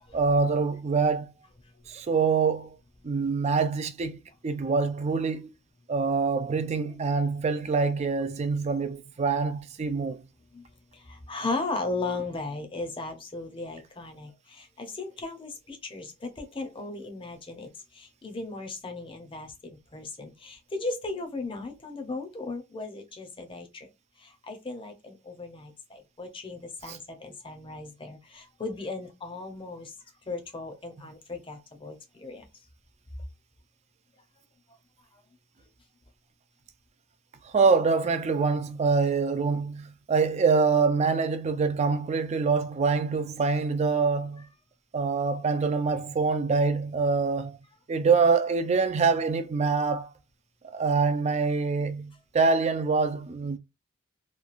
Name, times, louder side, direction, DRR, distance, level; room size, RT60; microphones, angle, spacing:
voice 1, 0.1-1.3 1.9-2.7 3.0-5.5 5.9-10.2 26.9-27.0 37.5-44.5 44.9-47.6 47.9-50.1 50.7-53.6, right 4 dB, 30° right, 0.3 m, -25 dB
voice 2, 10.9-23.9 24.2-29.9 30.3-32.4 35.1-35.2, left 3 dB, 25° left, 0.6 m, -36 dB
3.0 x 2.3 x 2.4 m
head